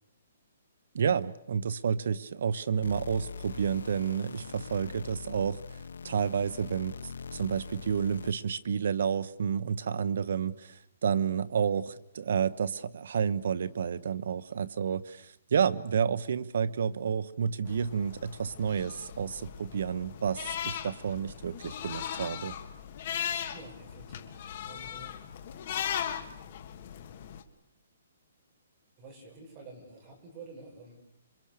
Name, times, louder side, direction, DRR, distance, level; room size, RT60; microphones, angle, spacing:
voice 1, 0.9-5.8 6.0-6.9 7.3-22.6, right 7 dB, 55° right, 15 dB, 1.0 m, -30 dB
sound 1, 2.8-8.6, left 5 dB, 90° left, 0.9 m, -43 dB
sound 2, 17.7-27.4, left 9 dB, 35° left, 1.8 m, -38 dB
voice 2, 23.5-25.3 29.0-31.0, right 2 dB, 20° right, 0 dB, 5.7 m, -50 dB
27.0 x 24.0 x 6.7 m, 0.76 s
hypercardioid pair, 175°, 0 cm